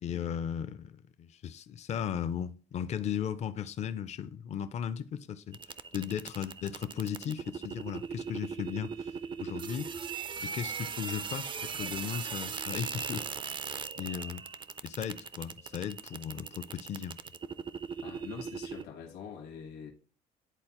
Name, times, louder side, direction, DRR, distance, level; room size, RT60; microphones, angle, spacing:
voice 1, 0.0-5.6 5.9-9.1 9.4-9.9 10.4-11.5 11.8-13.6 14.0-14.4 14.8-17.2, left 8 dB, 40° left, 0.4 m, -36 dB
sound 1, 5.5-18.8, right 6 dB, 30° right, 0.4 m, -39 dB
voice 2, 18.0-19.9, left 7 dB, 75° left, 1.4 m, -44 dB
10.0 x 4.0 x 2.9 m
cardioid pair, 110°, 17 cm